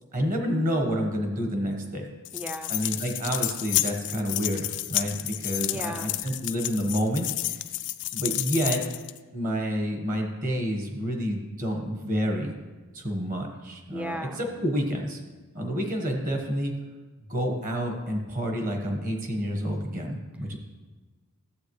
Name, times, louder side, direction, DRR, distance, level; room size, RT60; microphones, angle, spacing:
voice 1, 0.1-2.0 2.7-7.3 8.1-8.9 9.3-12.5 12.9-15.2 15.5-16.7 17.3-20.6, equal, 40° right, 3 dB, 1.3 m, -29 dB
sound 1, 2.2-9.2, left 15 dB, 55° left, 0.4 m, -30 dB
voice 2, 2.3-2.7 5.7-6.2 13.9-14.4, equal, 5° right, 6 dB, 0.4 m, -35 dB
14.0 x 7.6 x 3.2 m, 1.3 s
head